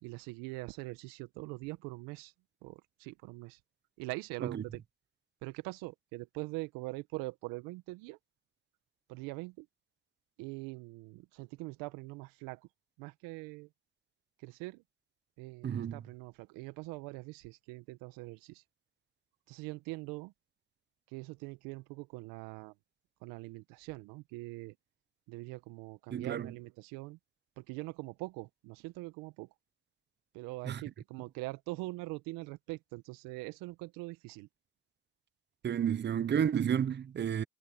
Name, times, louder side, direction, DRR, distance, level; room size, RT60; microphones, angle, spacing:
voice 1, 0.0-2.3 2.6-3.6 4.0-4.8 5.4-8.2 9.1-9.7 10.4-12.6 13.0-13.7 14.4-14.8 15.4-18.6 19.5-20.3 21.1-22.7 23.2-24.7 25.3-27.2 27.6-29.5 30.3-34.5, right 23 dB, 70° right, 1.8 m, -43 dB
voice 2, 15.6-16.0 26.1-26.5 30.6-30.8 35.6-37.4, right 8 dB, 30° right, 0.9 m, -31 dB
hypercardioid pair, 75°, 35 cm